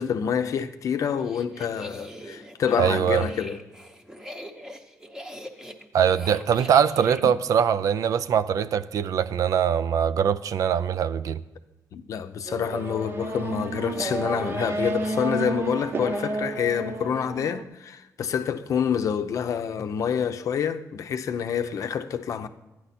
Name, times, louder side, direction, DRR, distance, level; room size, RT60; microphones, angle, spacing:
voice 1, 0.0-3.6 11.9-22.5, left 7 dB, 60° left, 0.6 m, -27 dB
sound 1, 1.0-7.2, equal, 10° right, 0.8 m, -42 dB
voice 2, 2.8-3.2 5.9-11.4, right 8 dB, 65° right, 0.4 m, -22 dB
Race car auto racing / Accelerating revving vroom, 12.5-17.6, right 2 dB, 40° right, 0.8 m, -31 dB
13.0 x 10.0 x 4.2 m
wide cardioid pair, 155°, 6 cm